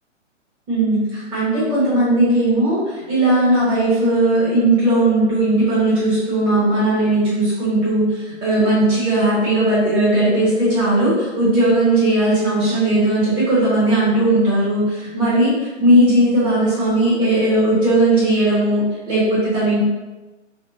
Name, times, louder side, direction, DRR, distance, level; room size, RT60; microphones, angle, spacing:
voice 1, 0.7-19.8, right 1 dB, 15° right, -10 dB, 1.0 m, -17 dB
3.5 x 2.2 x 2.8 m, 1.2 s
hypercardioid pair, 150°, 37 cm